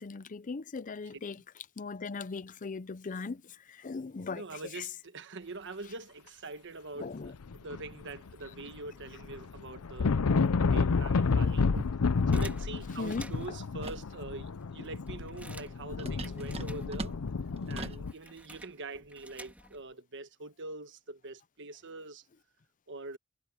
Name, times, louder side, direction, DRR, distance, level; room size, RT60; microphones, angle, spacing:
voice 1, 0.0-1.4 1.8-3.4 3.8-4.4 7.0-7.3 13.0-13.2, left 4 dB, 35° left, 0.5 m, -38 dB
voice 2, 1.1-1.4 4.3-10.2 10.7-17.1 17.7-22.2 22.9-23.2, right 3 dB, 55° right, 1.3 m, -44 dB
sound 1, 7.3-8.3 8.6-18.1, left 4 dB, 85° left, 0.6 m, -30 dB
sound 2, 12.3-13.7 14.3-14.4 14.6-17.3 17.5-19.9, right 1 dB, 5° right, 2.4 m, -52 dB
sound 3, 13.8-14.1 16.0-18.1, right 2 dB, 30° right, 1.4 m, -41 dB
head